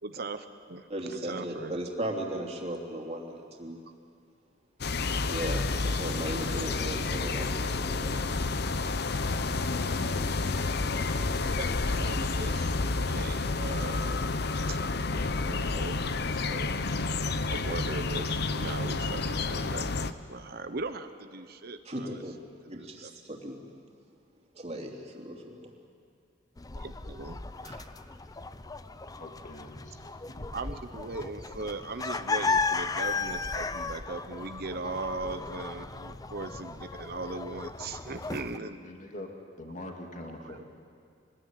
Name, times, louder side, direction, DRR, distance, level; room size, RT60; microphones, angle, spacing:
voice 1, 0.0-1.8 11.6-12.7 13.1-14.1 14.7-14.8 15.4-16.8 17.3-22.2 22.6-23.1 26.8-27.4 30.5-38.8 40.2-40.6, right 3 dB, 55° right, 9 dB, 1.0 m, -39 dB
voice 2, 0.9-3.8 5.3-8.2 21.8-22.3 22.7-23.6 24.5-25.7 27.6-27.8, right 1 dB, 35° right, 1 dB, 3.1 m, -37 dB
sound 1, 4.8-20.1, left 3 dB, 60° left, 0.9 m, -30 dB
sound 2, 26.6-38.6, left 4 dB, 20° left, 0.6 m, -35 dB
voice 3, 29.2-30.0 30.3-30.5 38.6-39.3 39.6-40.6, left 1 dB, 45° left, 2 dB, 2.3 m, -43 dB
24.5 x 20.0 x 9.4 m, 2.3 s
head